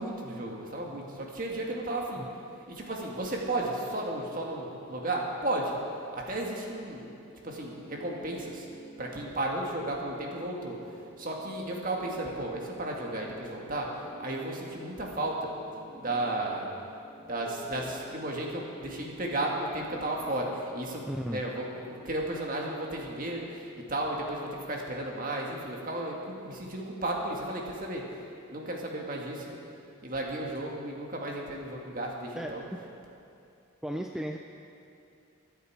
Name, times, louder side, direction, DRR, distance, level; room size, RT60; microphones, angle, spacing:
voice 1, 0.0-2.3 2.7-5.7 6.1-7.1 7.4-8.7 9.0-10.8 11.2-13.9 14.2-15.5 16.0-16.7 17.2-28.1 28.5-29.6 30.0-32.6, right 1 dB, 40° right, -1 dB, 1.8 m, -34 dB
sound 1, 7.4-22.0, right 2 dB, 85° right, 2.8 m, -49 dB
voice 2, 21.1-21.4 32.4-32.8 33.8-34.4, equal, ahead, 2 dB, 0.3 m, -35 dB
23.0 x 8.1 x 4.7 m, 2.6 s
head